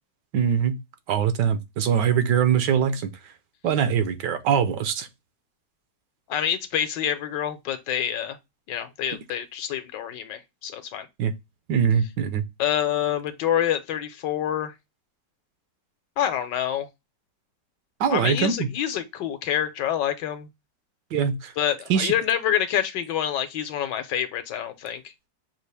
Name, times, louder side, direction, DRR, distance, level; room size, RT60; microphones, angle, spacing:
voice 1, 0.3-0.8 1.1-3.1 3.6-5.1 11.2-11.3 11.7-12.4 18.0-18.7 21.1-21.5 21.9-22.1, right 7 dB, 80° right, 1.3 m, -22 dB
voice 2, 6.3-8.4 8.7-11.1 12.6-14.7 16.2-16.9 18.1-20.5 21.6-25.1, left 10 dB, 80° left, 1.4 m, -27 dB
6.1 x 2.5 x 3.3 m
omnidirectional pair, 1.9 m